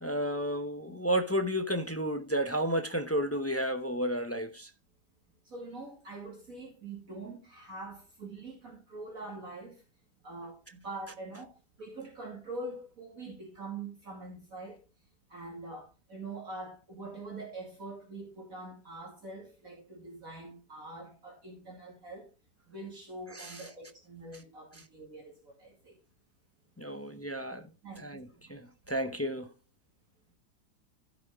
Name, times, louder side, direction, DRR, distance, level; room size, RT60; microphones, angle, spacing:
voice 1, 0.0-4.7 23.3-23.6 26.8-27.7 28.0-29.5, equal, 15° left, 0.5 m, -32 dB
voice 2, 5.4-9.8 10.2-14.8 15.3-22.3 22.7-26.0 27.8-28.5, right 2 dB, 55° right, 2.8 m, -44 dB
15.5 x 6.0 x 3.6 m
omnidirectional pair, 1.8 m